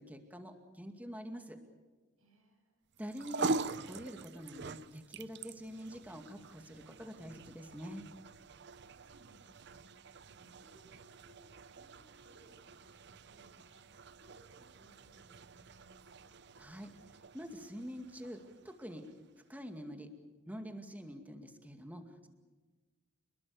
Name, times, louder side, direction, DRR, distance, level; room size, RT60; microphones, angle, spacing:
voice 1, 0.0-1.6 3.0-8.0 16.6-16.9 17.3-19.1 19.5-20.1 20.5-22.3, equal, 5° right, 6 dB, 2.2 m, -46 dB
voice 2, 2.2-2.9 8.7-16.4, right 1 dB, 85° right, 3 dB, 7.2 m, -65 dB
sound 1, 2.9-19.4, right 3 dB, 55° right, 0.7 m, -44 dB
28.5 x 21.0 x 7.1 m, 1.3 s
head